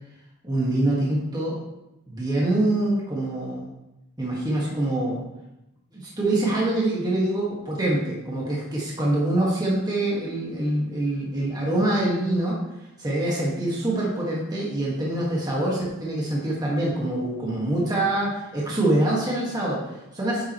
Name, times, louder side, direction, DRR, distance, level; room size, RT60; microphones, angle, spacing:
voice 1, 0.4-1.6 2.1-3.7 4.2-5.2 5.9-12.6 13.0-20.4, right 1 dB, 20° right, -5 dB, 1.6 m, -25 dB
8.8 x 7.3 x 3.0 m, 0.91 s
head